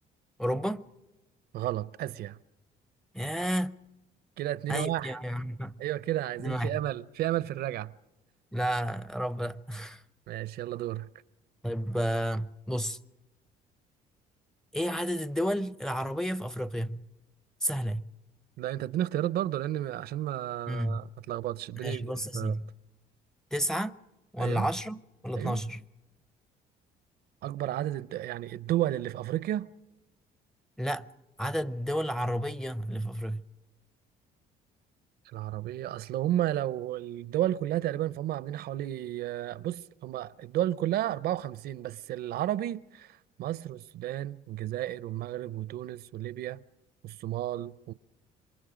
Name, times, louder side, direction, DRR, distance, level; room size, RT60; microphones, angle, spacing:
voice 1, 0.4-0.8 3.1-3.8 4.7-5.7 6.4-6.8 8.5-10.0 11.6-13.0 14.7-17.0 17.6-18.1 20.7-21.0 21.8-22.7 23.5-23.9 24.3-25.8 30.8-31.1 31.4-33.4, equal, 5° left, 0.6 m, -31 dB
voice 2, 1.5-2.4 4.4-5.1 5.8-7.9 10.3-11.1 18.6-22.6 24.4-24.7 25.4-25.6 27.4-29.7 35.3-46.6 47.0-47.9, right 13 dB, 70° right, 0.6 m, -32 dB
27.0 x 23.0 x 5.0 m
cardioid pair, 110°, 17 cm